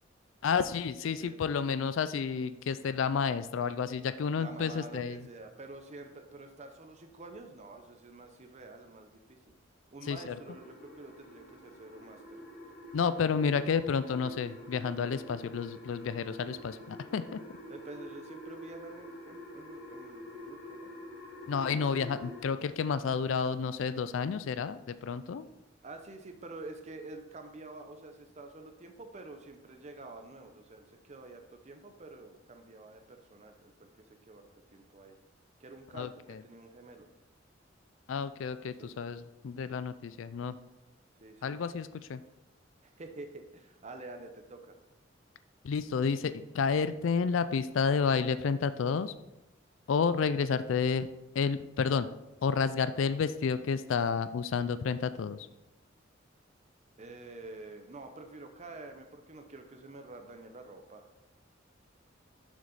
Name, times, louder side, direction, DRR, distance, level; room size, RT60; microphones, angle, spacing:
voice 1, 0.4-5.3 10.1-10.3 12.9-17.4 21.5-25.5 35.9-36.4 38.1-40.5 41.4-42.2 45.6-49.1 49.9-51.1 51.3-52.1 52.4-55.5, left 6 dB, 85° left, 13 dB, 0.4 m, -30 dB
voice 2, 1.2-1.6 4.4-9.4 9.9-12.4 17.7-20.9 25.8-35.2 35.6-37.1 38.8-39.1 41.2-41.6 42.8-44.8 57.0-61.1, right 2 dB, 35° right, 6 dB, 0.7 m, -48 dB
sound 1, 10.3-22.4, equal, 65° left, 1.9 m, -47 dB
7.2 x 6.3 x 4.1 m, 0.94 s
head